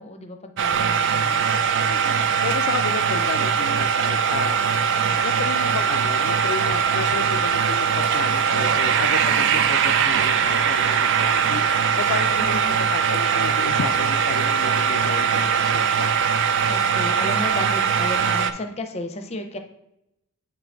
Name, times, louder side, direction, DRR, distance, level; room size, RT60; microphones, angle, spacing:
voice 1, 0.0-1.5 4.9-5.2 9.2-9.4 12.4-12.8 16.7-19.6, left 1 dB, 30° left, 5 dB, 0.6 m, -33 dB
sound 1, 0.6-18.5, right 7 dB, 55° right, 0.4 m, -21 dB
voice 2, 1.9-4.8 5.2-11.6 12.0-16.1, left 7 dB, 65° left, 8 dB, 0.3 m, -32 dB
7.8 x 3.7 x 3.5 m, 0.83 s
head